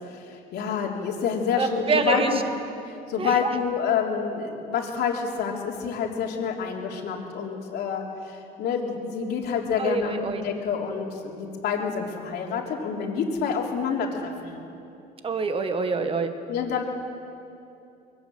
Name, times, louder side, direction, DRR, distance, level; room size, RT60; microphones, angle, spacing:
voice 1, 0.0-2.4 3.1-14.6 16.5-16.8, left 6 dB, 75° left, 0 dB, 3.4 m, -28 dB
voice 2, 1.6-2.3 3.2-3.5 9.8-10.5 15.2-16.3, right 4 dB, 35° right, 8 dB, 1.5 m, -26 dB
22.5 x 17.0 x 7.8 m, 2.7 s
cardioid pair, 110°, 17 cm